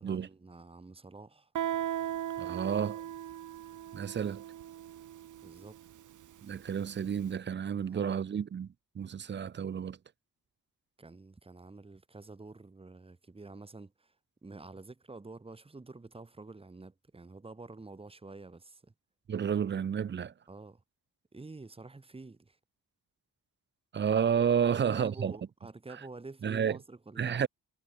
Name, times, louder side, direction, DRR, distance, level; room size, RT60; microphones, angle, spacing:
voice 1, 0.0-1.5 5.4-5.8 7.8-8.2 11.0-14.2 14.4-18.9 20.5-20.8 21.3-22.6 24.6-27.5, right 3 dB, 15° right, 2.0 m, -48 dB
Guitar, 1.5-7.0, right 11 dB, 60° right, 1.0 m, -38 dB
voice 2, 2.4-3.0 3.9-4.4 6.4-8.7 8.9-10.0 19.3-20.3 23.9-25.3 26.4-26.8 27.2-27.5, right 7 dB, 35° right, 0.6 m, -30 dB
wide cardioid pair, 150°, 34 cm